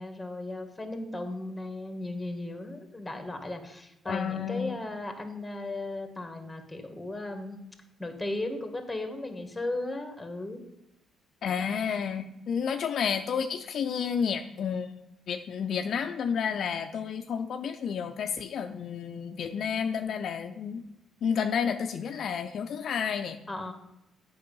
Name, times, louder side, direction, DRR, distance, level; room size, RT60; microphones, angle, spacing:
voice 1, 0.0-7.6 8.0-10.6 23.5-23.7, left 2 dB, 10° left, 5 dB, 1.7 m, -36 dB
voice 2, 4.1-4.8 11.4-14.9 15.3-20.8 21.2-23.4, left 7 dB, 65° left, 6 dB, 0.5 m, -31 dB
8.6 x 5.5 x 5.4 m, 0.89 s
cardioid pair, 80°, 0 cm